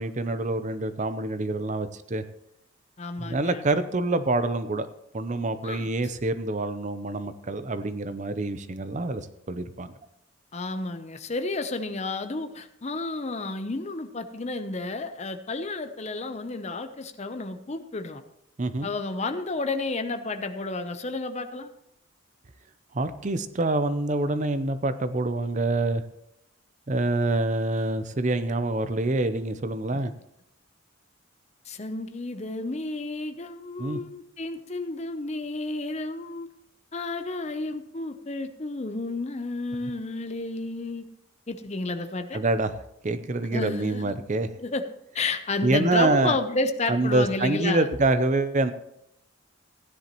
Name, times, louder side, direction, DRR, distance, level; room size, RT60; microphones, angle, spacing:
voice 1, 0.0-2.2 3.2-4.9 5.1-9.9 18.6-18.9 22.9-26.0 26.9-30.1 33.8-34.0 42.3-42.7 43.0-44.5 45.6-46.4 46.9-48.7, right 2 dB, 35° right, 11 dB, 0.6 m, -26 dB
voice 2, 3.0-3.6 5.6-5.9 10.5-18.2 18.8-21.7 31.7-36.5 36.9-41.1 41.5-42.4 43.5-44.1 44.6-44.8 45.1-47.9, left 3 dB, 30° left, 8 dB, 0.7 m, -31 dB
16.0 x 10.5 x 3.0 m, 0.78 s
head